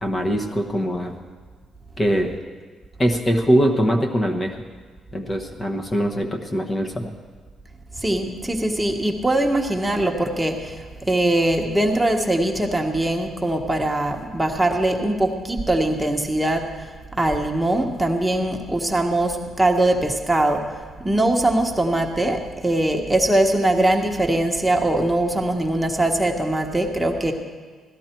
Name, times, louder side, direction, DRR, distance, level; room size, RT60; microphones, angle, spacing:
voice 1, 0.0-1.1 2.0-2.3 3.0-4.6 5.1-7.1, equal, 25° left, 3 dB, 1.2 m, -22 dB
voice 2, 8.0-16.7 17.1-20.6 21.0-27.3, right 1 dB, 5° right, 2 dB, 1.3 m, -21 dB
16.5 x 13.5 x 4.6 m, 1.5 s
cardioid pair, 90°, 0 cm